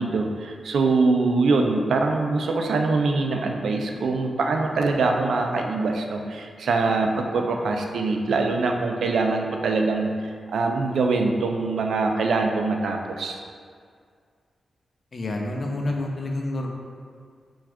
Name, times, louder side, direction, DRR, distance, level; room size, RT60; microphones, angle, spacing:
voice 1, 0.0-13.4, right 3 dB, 90° right, 3 dB, 0.4 m, -23 dB
voice 2, 15.1-16.7, left 2 dB, 45° left, 1 dB, 0.6 m, -28 dB
6.1 x 2.4 x 3.4 m, 2.1 s
wide cardioid pair, 135°, 0 cm